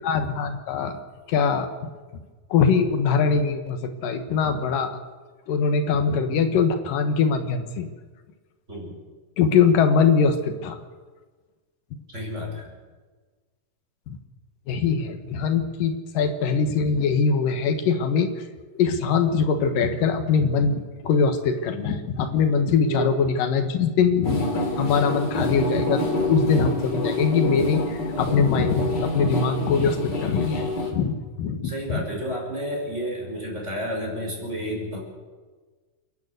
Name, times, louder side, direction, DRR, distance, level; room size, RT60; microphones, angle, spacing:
voice 1, 0.0-1.0 1.3-1.9 2.5-4.9 5.5-7.9 9.4-10.8 14.1-14.2 14.7-18.5 18.7-24.5 24.8-32.0, left 5 dB, 80° left, 8 dB, 3.1 m, -22 dB
voice 2, 12.1-12.7 22.9-23.1 31.6-35.0, equal, 20° right, 0 dB, 5.4 m, -31 dB
sound 1, 24.2-30.9, left 1 dB, 30° left, 3.7 m, -27 dB
28.5 x 11.5 x 8.1 m, 1.4 s
omnidirectional pair, 3.8 m